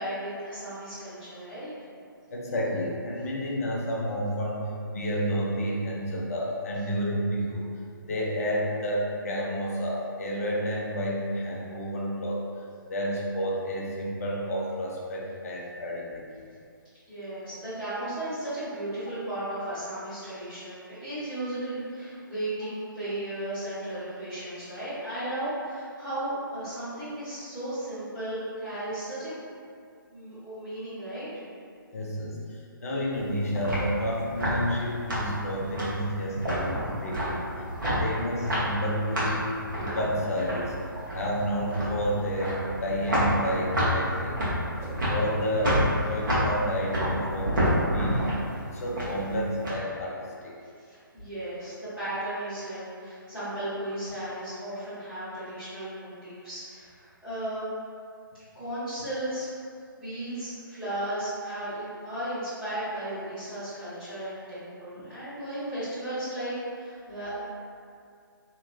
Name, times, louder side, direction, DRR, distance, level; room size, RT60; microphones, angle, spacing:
voice 1, 0.0-1.7 17.1-29.3 30.1-31.3 50.6-57.6 58.5-59.5 59.9-67.4, right 1 dB, 10° right, -17 dB, 1.1 m, -35 dB
voice 2, 2.3-7.7 8.0-16.5 31.9-36.7 37.0-40.8 41.1-44.6 44.9-47.6 47.9-48.3 48.6-50.6 65.0-65.1, equal, 40° left, -3 dB, 0.6 m, -30 dB
sound 1, 33.1-49.7, equal, 60° right, 1.2 m, -29 dB
sound 2, 43.4-43.7 44.8-45.1 46.2-46.6 47.6-48.0, equal, 40° right, 0.7 m, -43 dB
2.9 x 2.7 x 2.6 m, 2.3 s
figure-of-eight pair, 140°, 12 cm